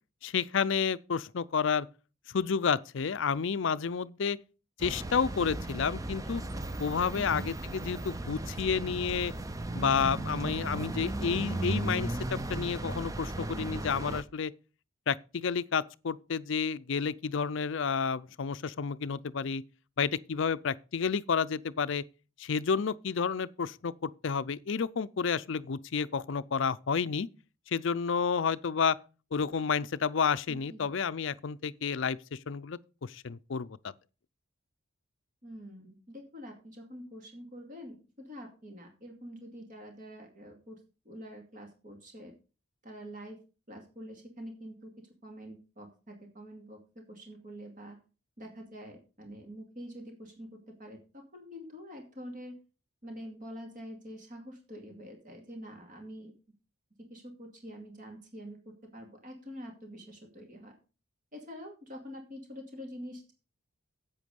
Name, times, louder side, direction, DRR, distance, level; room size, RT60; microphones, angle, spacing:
voice 1, 0.2-1.9 2.3-4.4 4.8-6.4 6.8-9.3 9.7-14.5 15.1-19.6 20.0-22.0 22.4-27.3 27.7-29.0 29.3-33.8, left 6 dB, 60° left, 0.5 m, -30 dB
sound 1, 4.8-14.2, right 2 dB, 15° right, 0.4 m, -36 dB
voice 2, 30.5-30.9 35.4-40.8 41.0-42.3 42.8-43.4 43.7-44.9 45.2-46.8 47.1-48.0 48.4-52.5 53.0-56.3 57.1-60.8 61.3-63.3, equal, 40° right, 2.2 m, -46 dB
8.5 x 8.2 x 5.3 m
head